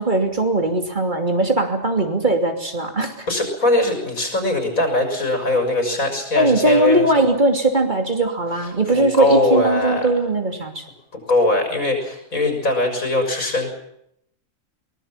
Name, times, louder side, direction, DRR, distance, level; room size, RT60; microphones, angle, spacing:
voice 1, 0.0-3.3 6.3-10.8, right 2 dB, 35° right, 4 dB, 3.0 m, -19 dB
voice 2, 3.3-7.0 8.6-10.0 11.1-13.7, left 1 dB, 85° left, 5 dB, 6.3 m, -21 dB
23.5 x 19.5 x 7.4 m, 0.75 s
omnidirectional pair, 1.4 m